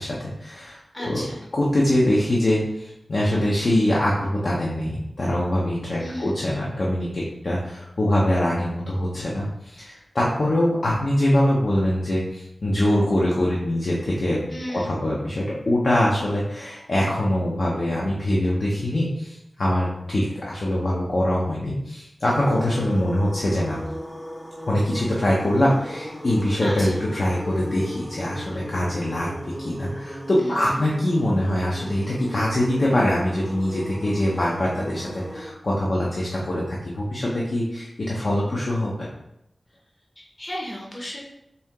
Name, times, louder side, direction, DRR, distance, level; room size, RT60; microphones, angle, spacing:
voice 1, 0.0-1.3 1.5-14.4 14.7-23.8 24.7-29.3 29.6-39.1, left 1 dB, 65° left, -4 dB, 0.7 m, -23 dB
voice 2, 0.9-1.4 6.0-6.3 14.5-15.0 26.6-27.0 30.4-30.7 40.2-41.2, equal, 30° left, -2 dB, 0.8 m, -34 dB
sound 1, 22.3-35.5, equal, 5° right, 0.6 m, -37 dB
4.1 x 2.8 x 3.6 m, 0.83 s
wide cardioid pair, 75°, 0 cm